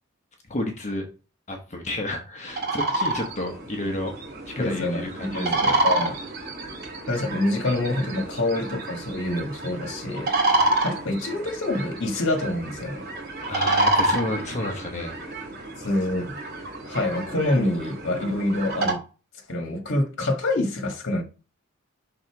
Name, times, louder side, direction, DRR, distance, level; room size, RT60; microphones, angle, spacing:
voice 1, 0.5-1.1 1.5-4.1 4.5-5.8 13.5-15.2, left 1 dB, 35° left, 1.1 m, -31 dB
sound 1, 2.5-18.9, right 2 dB, 45° right, 2.5 m, -28 dB
voice 2, 4.6-6.1 7.1-10.3 10.8-13.0 15.8-19.0 19.5-21.2, left 1 dB, 60° left, 1.4 m, -26 dB
6.5 x 3.9 x 4.7 m
head